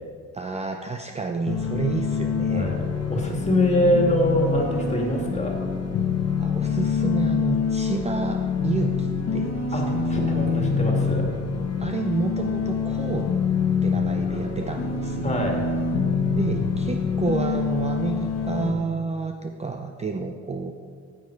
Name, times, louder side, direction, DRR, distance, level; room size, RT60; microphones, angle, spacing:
voice 1, 0.3-2.7 6.4-10.6 11.8-13.3 13.8-15.4 16.3-20.7, right 4 dB, 20° right, 4 dB, 0.5 m, -30 dB
sound 1, 1.5-18.7, left 5 dB, 55° left, 1.1 m, -25 dB
voice 2, 3.1-5.6 9.7-11.2 14.3-14.4 15.2-15.6, left 1 dB, 20° left, 0 dB, 2.2 m, -24 dB
9.5 x 7.5 x 4.6 m, 2.1 s
cardioid pair, 90°, 30 cm